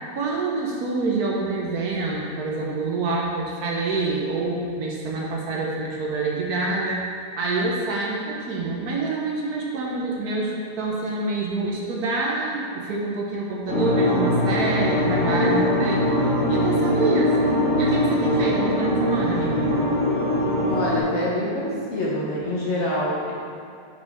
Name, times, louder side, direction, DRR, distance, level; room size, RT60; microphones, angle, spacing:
voice 1, 0.1-7.1 7.4-16.1 16.5-19.9, right 3 dB, 65° right, -3 dB, 1.3 m, -26 dB
sound 1, 13.7-21.0, left 1 dB, 45° right, 2.0 m, -22 dB
voice 2, 20.7-23.3, left 1 dB, 45° left, -6 dB, 1.1 m, -26 dB
5.2 x 4.8 x 5.4 m, 2.4 s
omnidirectional pair, 1.9 m